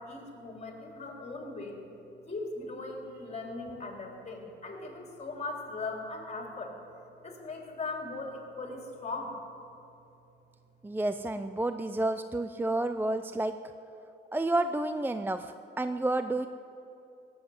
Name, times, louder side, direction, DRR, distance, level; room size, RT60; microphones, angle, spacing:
voice 1, 0.0-1.8 2.3-6.7 7.2-9.3, left 3 dB, 35° left, 1 dB, 3.7 m, -39 dB
voice 2, 10.8-13.6 14.3-16.5, right 2 dB, 10° right, 10 dB, 0.5 m, -30 dB
17.5 x 7.9 x 9.6 m, 2.9 s
cardioid pair, 90°, 20 cm